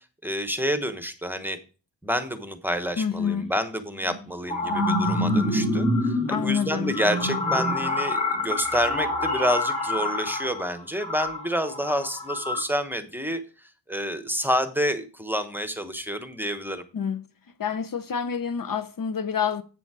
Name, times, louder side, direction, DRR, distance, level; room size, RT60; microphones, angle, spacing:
voice 1, 0.2-1.6 2.0-13.4 13.9-16.8, equal, 5° right, 0.9 m, -28 dB
voice 2, 3.0-3.5 6.3-7.0 16.9-17.2 17.6-19.6, left 7 dB, 50° left, 0.6 m, -27 dB
sound 1, 3.3-3.4 4.1-12.6, left 1 dB, 15° left, 4.0 m, -26 dB
8.3 x 7.0 x 4.8 m
wide cardioid pair, 130°, 44 cm